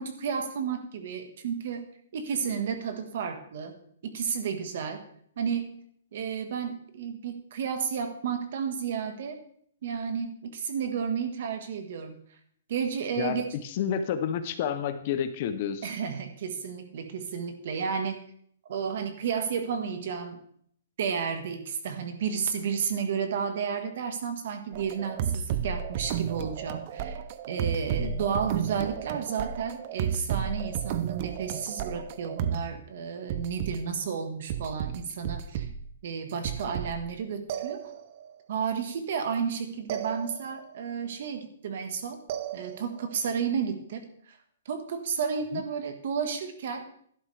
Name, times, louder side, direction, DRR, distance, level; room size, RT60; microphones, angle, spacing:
voice 1, 0.0-1.9 2.1-3.7 4.0-5.0 5.4-5.7 6.1-9.4 9.8-12.2 12.7-13.4 15.8-18.2 18.7-20.4 21.0-27.2 27.5-35.7 36.0-37.8 38.5-42.2 42.5-44.4 44.6-46.9, right 6 dB, 45° right, 7 dB, 1.5 m, -32 dB
voice 2, 13.2-15.9 28.0-28.1 45.5-45.6, left 8 dB, 30° left, 10 dB, 0.7 m, -30 dB
sound 1, 24.7-32.7 33.3-33.8 34.5-35.9 36.3-37.1 37.5-38.3 39.9-40.7 42.3-43.1, right 9 dB, 30° right, 0.5 m, -33 dB
12.0 x 11.0 x 3.4 m, 0.63 s
hypercardioid pair, 175°, 0 cm